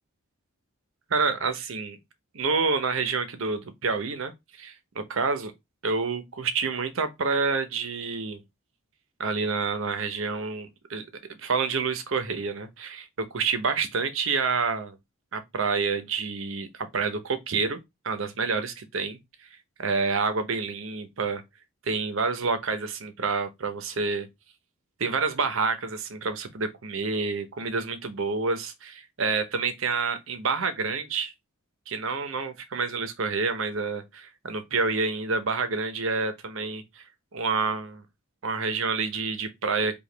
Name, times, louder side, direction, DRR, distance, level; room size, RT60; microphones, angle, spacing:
voice 1, 1.1-2.0 2.3-4.3 4.6-5.5 5.8-8.4 9.2-11.1 11.4-15.0 15.3-17.8 18.0-19.2 19.8-21.4 21.9-24.3 25.0-31.3 31.9-37.0 37.3-38.0 38.4-40.0, right 4 dB, 60° right, 0.7 m, -28 dB
4.9 x 2.4 x 3.3 m
head